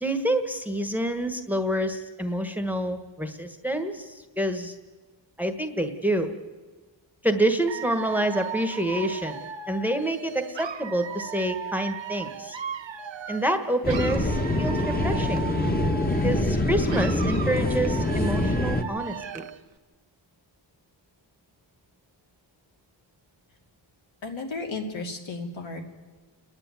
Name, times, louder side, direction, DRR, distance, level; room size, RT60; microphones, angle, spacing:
voice 1, 0.0-4.7 5.4-6.3 7.2-9.4 9.7-12.6 13.3-15.4 16.2-19.5, right 1 dB, 5° right, 8 dB, 1.4 m, -27 dB
Dog / Alarm, 7.7-13.6 13.9-16.6 16.9-19.6, right 7 dB, 70° right, 1.1 m, -37 dB
sound 1, 13.8-18.8, left 1 dB, 20° left, 1.4 m, -25 dB
voice 2, 24.2-25.8, left 3 dB, 75° left, 1 dB, 3.1 m, -34 dB
29.0 x 10.5 x 9.7 m, 1.3 s
wide cardioid pair, 120°, 46 cm